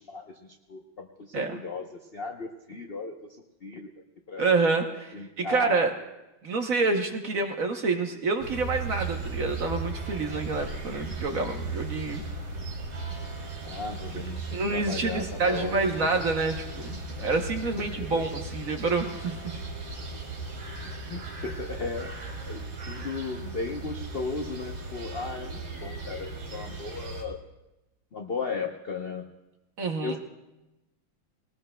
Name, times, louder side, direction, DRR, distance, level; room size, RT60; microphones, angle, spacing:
voice 1, 0.0-3.1 3.6-3.9 4.3-4.4 5.1-5.8 13.6-16.2 17.9-18.2 20.8-22.1 22.4-27.4 28.1-29.3 30.0-30.2, left 4 dB, 60° left, 3 dB, 0.6 m, -36 dB
voice 2, 4.4-5.9 6.4-12.2 14.5-19.4 29.8-30.2, right 3 dB, 55° right, 4 dB, 1.1 m, -27 dB
sound 1, 8.4-27.2, right 3 dB, 85° right, 3.0 m, -37 dB
20.0 x 19.0 x 2.2 m, 0.98 s
omnidirectional pair, 2.1 m